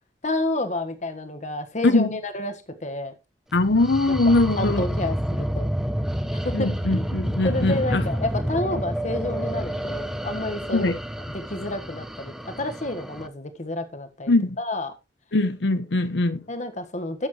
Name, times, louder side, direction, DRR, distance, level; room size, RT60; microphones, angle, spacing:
voice 1, 0.2-2.5 2.8-3.1 4.2-5.7 6.3-11.0 11.3-14.9 16.5-17.3, left 2 dB, 45° left, 1.6 m, -30 dB
voice 2, 1.8-2.2 3.5-4.8 6.5-8.0 10.7-11.0 14.3-14.6 15.3-16.4, left 2 dB, 90° left, 0.9 m, -21 dB
sound 1, 3.5-13.3, equal, 5° right, 0.8 m, -29 dB
12.5 x 8.4 x 3.2 m
head